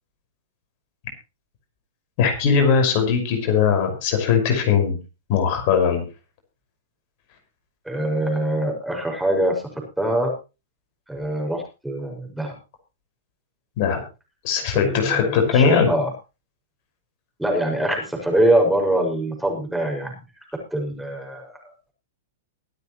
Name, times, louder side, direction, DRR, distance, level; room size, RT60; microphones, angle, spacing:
voice 1, 2.2-5.0 5.3-6.0 13.8-14.0 14.4-15.9, left 6 dB, 50° left, 4 dB, 5.7 m, -19 dB
voice 2, 7.8-9.6 10.0-10.3 11.1-12.5 14.7-16.1 17.4-20.2 20.7-21.7, right 1 dB, 5° right, 1 dB, 6.0 m, -23 dB
23.5 x 9.2 x 3.2 m, 0.29 s
hypercardioid pair, 115°, 0 cm